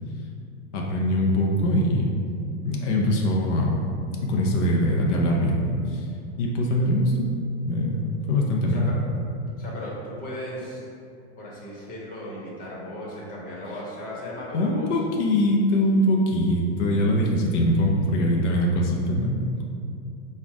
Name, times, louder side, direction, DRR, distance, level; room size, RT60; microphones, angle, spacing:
voice 1, 0.7-2.1 2.6-3.9 4.2-6.1 6.4-7.3 7.7-8.9 14.5-19.6, left 1 dB, 90° left, -1 dB, 0.7 m, -22 dB
voice 2, 9.6-10.8 11.4-14.9, left 1 dB, 25° left, -5 dB, 1.1 m, -36 dB
4.4 x 2.4 x 4.8 m, 2.5 s
supercardioid pair, 155°, 35 cm